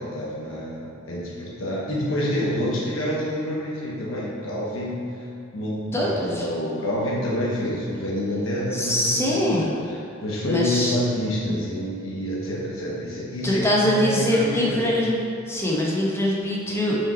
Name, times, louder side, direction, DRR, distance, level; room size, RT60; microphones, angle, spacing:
voice 1, 0.0-5.3 5.5-5.8 6.3-9.7 10.2-15.0, equal, 75° left, -5 dB, 1.2 m, -27 dB
voice 2, 5.9-6.4 8.7-9.7 10.4-10.9 13.4-15.2 15.5-17.0, left 1 dB, 15° left, -4 dB, 1.0 m, -23 dB
5.8 x 5.2 x 4.3 m, 2.4 s
head